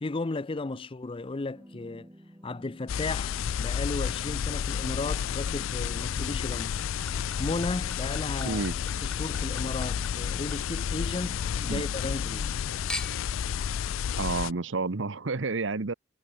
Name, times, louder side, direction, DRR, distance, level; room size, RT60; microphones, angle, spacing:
voice 1, 0.0-2.1 2.4-6.8 7.4-8.7 9.0-11.4 11.7-12.5, left 3 dB, 25° left, 0.5 m, -34 dB
sound 1, 1.5-13.3, equal, 15° right, 3.4 m, -51 dB
sound 2, 2.9-14.5, left 8 dB, 85° left, 0.4 m, -31 dB
Chink clink / Liquid, 6.0-11.5 11.9-12.5 12.9-13.4 14.1-14.2, left 1 dB, 5° left, 1.3 m, -44 dB
voice 2, 8.4-8.7 11.6-11.9 14.2-15.9, right 3 dB, 70° right, 1.0 m, -30 dB
head